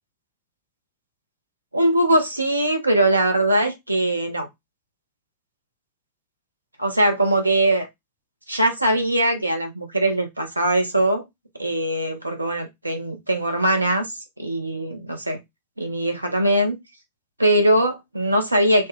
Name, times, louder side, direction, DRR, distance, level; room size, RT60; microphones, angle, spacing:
voice 1, 1.7-4.5 6.8-7.9 8.5-11.2 11.6-14.1 14.4-15.4 15.8-16.8 17.4-18.9, right 1 dB, 85° right, 0.7 m, -21 dB
3.0 x 2.2 x 3.1 m
figure-of-eight pair, 90°, 0 cm